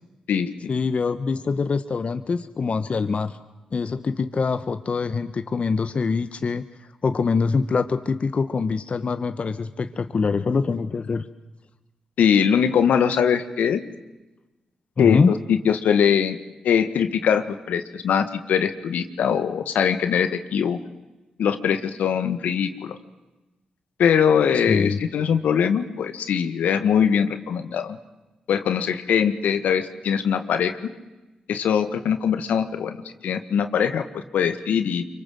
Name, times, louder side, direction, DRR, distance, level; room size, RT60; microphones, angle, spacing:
voice 1, 0.7-3.4 3.7-6.6 7.0-11.2 15.0-15.3 24.5-25.0, left 4 dB, 50° left, 10 dB, 1.2 m, -24 dB
voice 2, 12.2-13.8 15.0-15.2 15.5-16.4 16.6-20.8 21.4-23.0 24.0-28.0 28.5-30.8 31.5-33.0 33.2-35.0, left 7 dB, 80° left, 9 dB, 1.7 m, -22 dB
27.0 x 24.5 x 7.9 m, 1.1 s
supercardioid pair, 45°, 3 cm